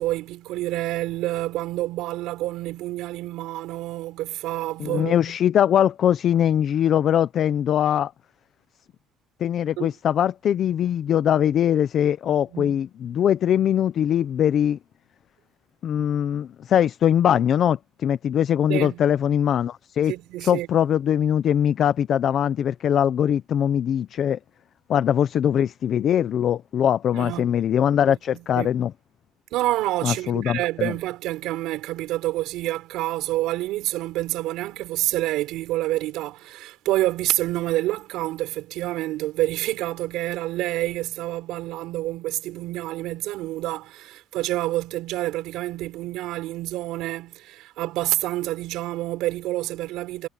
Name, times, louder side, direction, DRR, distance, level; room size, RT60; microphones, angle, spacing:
voice 1, 0.0-5.1 9.8-9.9 12.5-12.8 18.7-19.0 20.1-20.7 27.1-27.6 28.1-28.7 29.5-50.3, right 16 dB, 65° right, 5.5 m, -28 dB
voice 2, 4.8-8.1 9.4-14.8 15.8-20.1 20.4-24.4 24.9-28.9 30.0-30.9, left 9 dB, 40° left, 0.6 m, -21 dB
cardioid pair, 170°, 0 cm